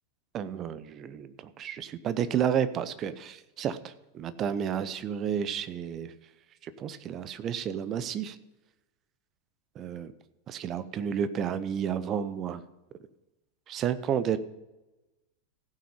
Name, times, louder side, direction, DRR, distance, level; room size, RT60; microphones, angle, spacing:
voice 1, 0.3-6.1 6.6-8.4 9.8-10.1 10.5-12.6 13.7-14.4, right 8 dB, 30° right, 14 dB, 0.7 m, -31 dB
15.5 x 6.0 x 5.6 m, 1.0 s
figure-of-eight pair, 90°, 0 cm